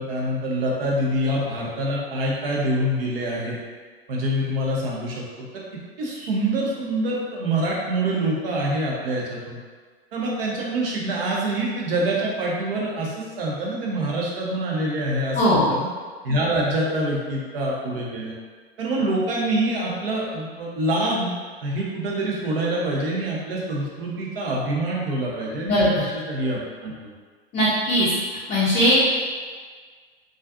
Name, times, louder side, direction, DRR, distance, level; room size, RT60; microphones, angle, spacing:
voice 1, 0.0-3.6 4.1-5.2 6.0-9.6 10.1-15.9 16.2-18.3 18.8-21.3 21.6-27.1, right 1 dB, 65° right, -4 dB, 0.7 m, -25 dB
voice 2, 15.4-15.7 25.7-26.0 27.5-28.1 28.5-29.1, equal, 20° left, -8 dB, 0.5 m, -19 dB
2.4 x 2.3 x 2.4 m, 1.5 s
figure-of-eight pair, 85°, 31 cm